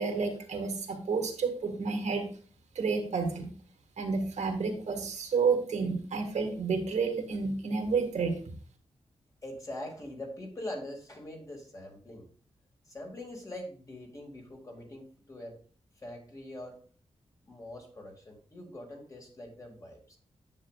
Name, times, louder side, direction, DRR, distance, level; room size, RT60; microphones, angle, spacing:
voice 1, 0.0-2.3 2.8-3.5 4.0-8.4, right 5 dB, 85° right, 4 dB, 1.7 m, -30 dB
voice 2, 9.4-12.3 12.9-15.6 16.0-16.8 17.5-20.2, left 1 dB, 30° left, 0 dB, 2.2 m, -43 dB
9.9 x 7.7 x 2.4 m, 0.42 s
wide cardioid pair, 145°, 12 cm